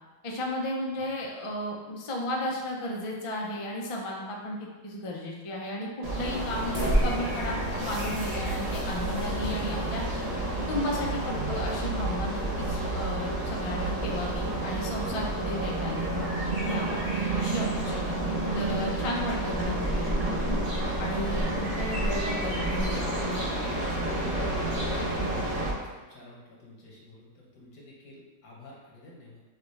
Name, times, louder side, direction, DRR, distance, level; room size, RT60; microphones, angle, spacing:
voice 1, 0.2-10.0 10.7-16.3 16.6-17.0 17.4-20.6 21.0-23.7, left 1 dB, 40° left, -2 dB, 0.4 m, -34 dB
sound 1, 6.0-25.7, right 1 dB, 35° right, 0.7 m, -29 dB
voice 2, 24.9-29.4, left 2 dB, 80° left, -4 dB, 1.6 m, -51 dB
6.4 x 2.5 x 3.2 m, 1.3 s
omnidirectional pair, 1.5 m